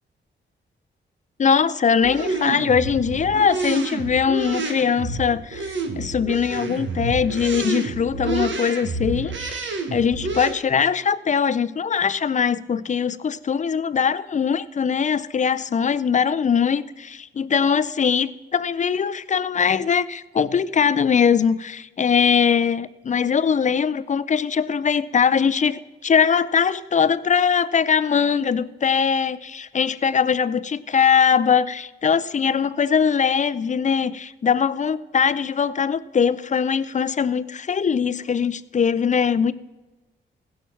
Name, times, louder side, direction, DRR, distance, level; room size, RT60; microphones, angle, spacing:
voice 1, 1.4-39.5, left 7 dB, 40° left, 0.5 m, -21 dB
sound 1, 2.0-10.5, right 3 dB, 75° right, 1.4 m, -29 dB
16.5 x 5.7 x 5.8 m
cardioid pair, 70°, 20 cm